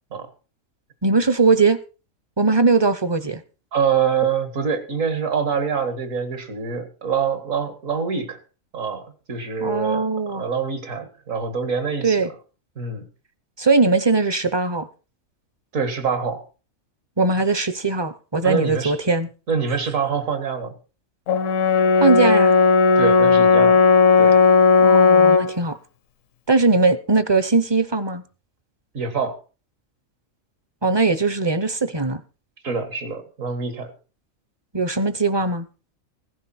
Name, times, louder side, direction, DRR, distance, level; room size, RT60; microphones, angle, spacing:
voice 1, 1.0-1.8 2.4-3.4 9.6-10.4 12.0-12.3 13.6-14.9 17.2-19.3 22.0-22.5 24.8-25.8 26.5-28.2 30.8-32.2 34.7-35.7, right 3 dB, 25° right, 0.6 m, -20 dB
voice 2, 3.7-8.4 8.7-12.3 12.8-13.1 15.7-16.4 18.4-19.0 19.5-20.8 23.0-23.9 24.2-24.4 28.9-29.4 32.6-33.9, right 6 dB, 70° right, 2.1 m, -25 dB
Brass instrument, 21.3-25.6, left 5 dB, 70° left, 1.1 m, -15 dB
16.0 x 10.5 x 4.3 m
omnidirectional pair, 1.4 m